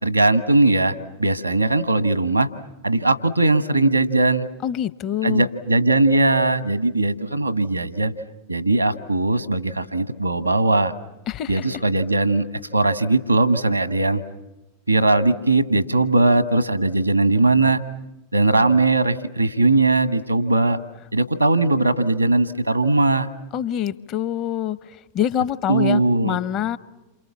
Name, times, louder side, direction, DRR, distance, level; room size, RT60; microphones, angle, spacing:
voice 1, 0.0-2.5 2.8-4.5 5.2-8.1 8.5-10.9 11.5-12.4 12.7-14.2 14.9-17.8 18.3-20.8 21.1-23.3 25.7-26.4, right 2 dB, 85° right, 13 dB, 1.3 m, -19 dB
voice 2, 4.6-5.5 11.3-11.7 23.5-24.8 25.1-26.8, left 10 dB, 35° left, 17 dB, 0.9 m, -25 dB
28.5 x 27.0 x 7.2 m, 0.98 s
figure-of-eight pair, 90°, 0 cm